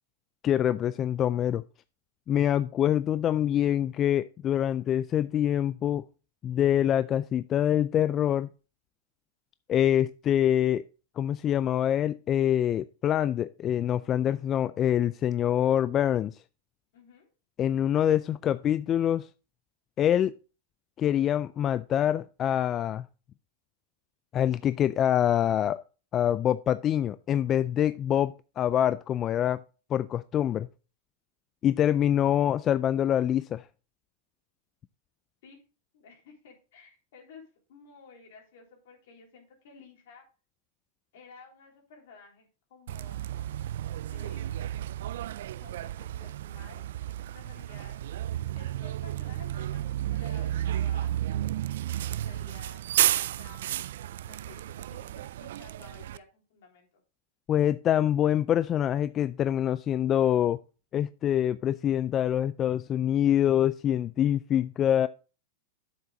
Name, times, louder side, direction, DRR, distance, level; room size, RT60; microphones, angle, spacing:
voice 1, 0.4-1.6 2.3-6.0 6.4-8.5 9.7-10.8 11.2-16.4 17.6-19.3 20.0-20.3 21.0-23.0 24.3-25.8 26.1-29.6 29.9-30.7 31.6-33.6 57.5-60.6 60.9-65.1, left 10 dB, 30° left, 0.3 m, -25 dB
voice 2, 16.9-17.3 35.4-35.6 35.9-40.2 41.1-43.3 44.1-44.6 45.6-48.0 48.5-51.6 52.1-53.6 54.2-57.0, left 4 dB, 70° left, 3.4 m, -53 dB
Bus, 42.9-56.2, right 12 dB, 75° right, 0.3 m, -32 dB
8.2 x 7.0 x 3.7 m
hypercardioid pair, 120°, 0 cm